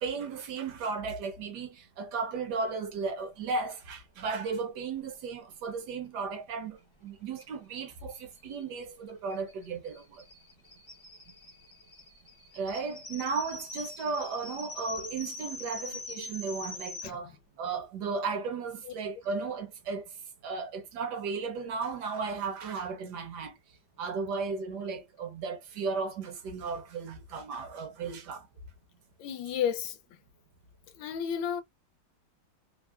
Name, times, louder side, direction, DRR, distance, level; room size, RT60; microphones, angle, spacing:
voice 1, 0.0-10.2 12.5-20.0 20.4-23.5 24.0-28.4, right 4 dB, 70° right, 1.1 m, -35 dB
sound 1, 7.4-7.5 7.7-7.8 8.1-17.1, left 2 dB, 25° left, 0.6 m, -44 dB
voice 2, 29.2-30.0 30.9-31.6, left 8 dB, 75° left, 1.2 m, -32 dB
3.5 x 2.0 x 2.3 m
omnidirectional pair, 2.1 m